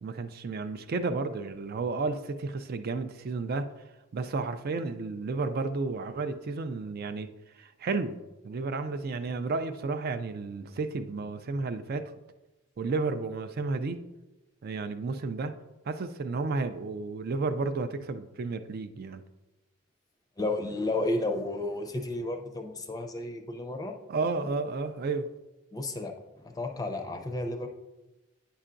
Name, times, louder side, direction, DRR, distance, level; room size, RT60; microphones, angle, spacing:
voice 1, 0.0-3.7 4.1-7.3 7.6-8.2 8.4-12.1 12.8-14.0 14.6-15.5 15.9-19.2 24.1-25.3, right 3 dB, 45° right, 9 dB, 0.3 m, -32 dB
voice 2, 20.4-23.9 25.7-27.7, left 2 dB, 20° left, 5 dB, 0.5 m, -32 dB
8.9 x 5.5 x 2.5 m, 1.0 s
head